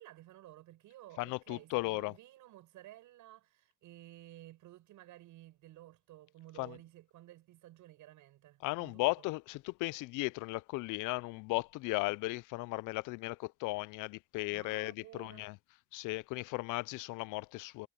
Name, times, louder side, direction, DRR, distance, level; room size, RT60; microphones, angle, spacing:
voice 1, 0.0-9.2 14.5-15.5, right 15 dB, 65° right, 7.2 m, -55 dB
voice 2, 1.2-2.1 6.6-6.7 8.6-15.5 15.9-17.9, left 22 dB, 70° left, 0.5 m, -36 dB
cardioid pair, 105°, 33 cm